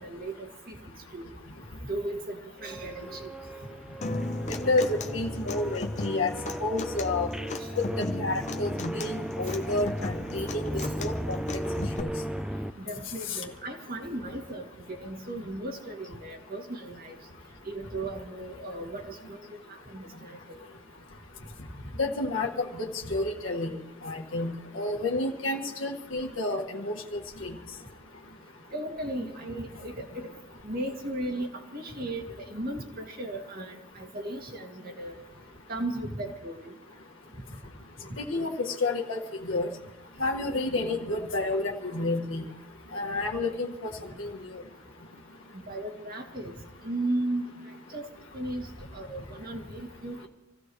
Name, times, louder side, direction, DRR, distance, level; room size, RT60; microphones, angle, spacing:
voice 1, 0.0-0.8 1.1-1.3 1.9-3.3 4.1-4.2 12.9-17.1 17.7-19.4 19.9-20.7 28.7-30.3 30.6-31.5 31.7-35.1 35.7-36.7 45.7-46.5 46.8-47.4 47.9-48.1 48.3-48.7 48.9-50.2, right 1 dB, 50° right, 2 dB, 2.1 m, -36 dB
sound 1, 2.6-12.7, equal, 5° right, 0.4 m, -36 dB
Human voice / Acoustic guitar, 4.0-12.0, left 2 dB, 35° left, 0.8 m, -36 dB
voice 2, 5.1-6.3 6.6-7.3 7.8-7.9 8.2-11.4 12.0-12.1 22.0-23.8 24.0-27.6 38.3-39.7 40.2-42.4 42.9-43.9 44.2-44.3, left 2 dB, 85° left, 1 dB, 1.7 m, -30 dB
27.0 x 15.5 x 3.2 m, 0.97 s
head